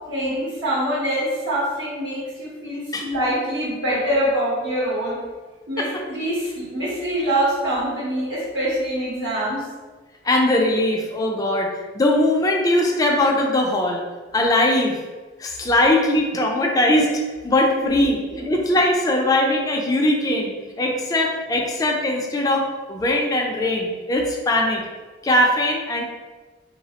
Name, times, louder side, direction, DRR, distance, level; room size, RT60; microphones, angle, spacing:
voice 1, 0.1-5.2 5.7-9.7 17.8-18.5, right 1 dB, 80° right, -8 dB, 0.8 m, -25 dB
voice 2, 10.2-11.7 11.9-14.0 14.3-15.0 15.4-17.1 17.4-18.2 18.5-20.5 20.8-24.8 25.2-26.0, left 1 dB, 20° left, 0 dB, 0.3 m, -20 dB
3.1 x 2.0 x 2.8 m, 1.3 s
head